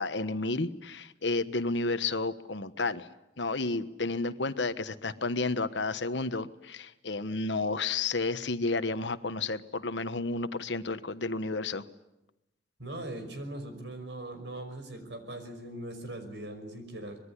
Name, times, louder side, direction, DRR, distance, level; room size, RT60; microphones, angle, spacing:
voice 1, 0.0-3.1 3.4-11.8, left 3 dB, 75° left, 12 dB, 1.3 m, -31 dB
voice 2, 12.8-17.2, right 1 dB, 70° right, 8 dB, 5.6 m, -40 dB
25.0 x 21.5 x 9.9 m, 0.91 s
head